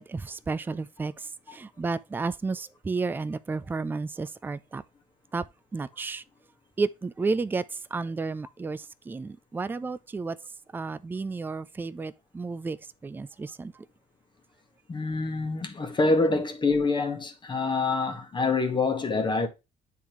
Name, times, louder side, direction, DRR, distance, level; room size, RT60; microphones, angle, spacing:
voice 1, 0.0-4.8 5.3-5.5 5.7-6.2 6.8-7.6 7.9-10.4 10.7-12.8 13.0-13.7 16.3-16.4, right 4 dB, 10° right, 0.3 m, -32 dB
voice 2, 14.9-19.5, left 3 dB, 30° left, 1.2 m, -26 dB
8.8 x 3.8 x 3.0 m
cardioid pair, 110°, 17 cm